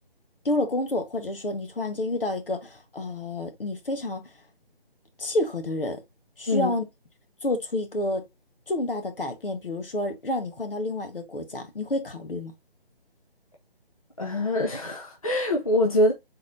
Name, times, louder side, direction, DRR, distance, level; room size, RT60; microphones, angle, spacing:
voice 1, 0.4-4.3 5.2-6.0 6.4-6.8 7.4-8.2 8.7-12.5, left 2 dB, 65° left, 1.3 m, -29 dB
voice 2, 14.2-16.1, left 1 dB, 35° left, 0.6 m, -24 dB
4.1 x 3.7 x 2.7 m
figure-of-eight pair, 180°, 30 cm